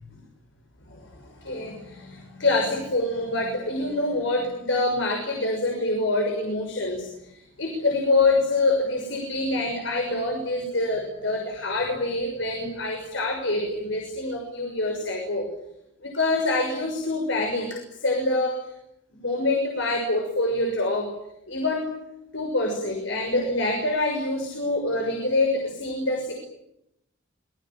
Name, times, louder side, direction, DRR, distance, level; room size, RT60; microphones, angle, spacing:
voice 1, 0.9-15.5 16.0-18.7 19.1-21.1 21.5-21.9 22.3-26.3, left 2 dB, 75° left, 2 dB, 6.2 m, -26 dB
26.5 x 22.5 x 9.1 m, 0.82 s
head